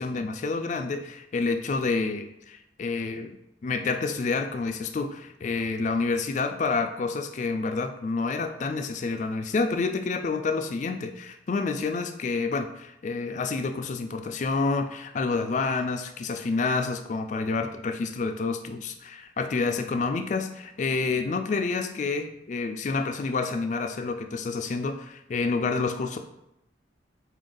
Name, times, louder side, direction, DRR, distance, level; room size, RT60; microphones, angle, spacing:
voice 1, 0.0-3.4 3.6-26.2, left 4 dB, 40° left, 7 dB, 0.3 m, -28 dB
3.9 x 2.6 x 3.8 m, 0.88 s
head